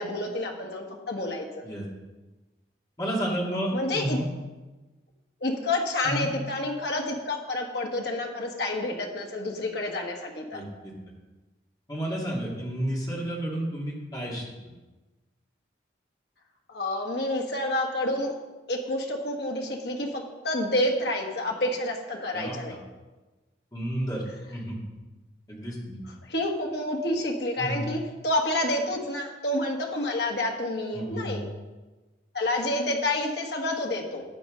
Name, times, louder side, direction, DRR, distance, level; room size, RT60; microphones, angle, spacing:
voice 1, 0.0-1.5 3.7-4.2 5.4-10.6 16.7-18.3 18.7-22.8 26.0-31.5 32.3-34.2, left 1 dB, 70° left, 1 dB, 1.6 m, -29 dB
voice 2, 3.0-4.3 6.0-6.3 10.5-10.9 11.9-14.4 22.3-22.8 23.7-24.2 24.5-24.8 25.5-26.0 27.6-27.8 30.9-31.5, right 1 dB, 20° left, -4 dB, 2.4 m, -31 dB
12.5 x 8.6 x 3.9 m, 1.2 s
head